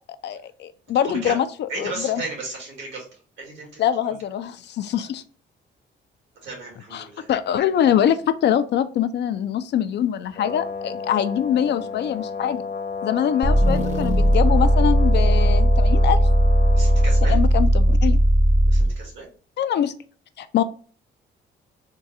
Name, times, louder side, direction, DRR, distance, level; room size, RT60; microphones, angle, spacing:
voice 1, 0.2-2.2 3.8-5.2 6.9-12.6 13.0-16.2 17.2-18.2 19.6-19.9 20.4-20.6, left 9 dB, 60° left, 11 dB, 0.4 m, -23 dB
voice 2, 1.0-1.4 1.7-3.1 3.4-3.9 4.9-5.1 6.4-7.3 16.7-17.4 18.6-19.3, right 2 dB, 70° right, 0 dB, 2.0 m, -34 dB
Brass instrument, 10.3-17.4, left 5 dB, 45° left, 0.8 m, -32 dB
sound 1, 13.4-19.0, right 1 dB, 35° right, 0.9 m, -17 dB
3.7 x 2.2 x 4.1 m, 0.41 s
cardioid pair, 90°, 20 cm